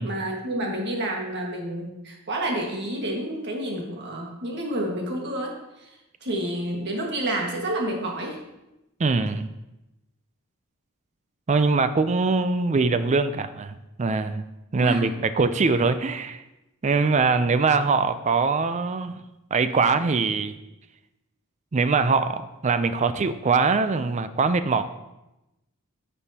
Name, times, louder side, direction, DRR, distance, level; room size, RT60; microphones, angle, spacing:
voice 1, 0.0-5.9 6.2-8.4 14.8-15.1, right 1 dB, 50° right, 0 dB, 1.7 m, -29 dB
voice 2, 9.0-9.5 11.5-14.4 14.7-16.4 16.8-19.2 19.5-20.6 21.7-24.8, right 4 dB, 30° right, 11 dB, 0.4 m, -22 dB
10.5 x 6.4 x 2.9 m, 0.95 s
head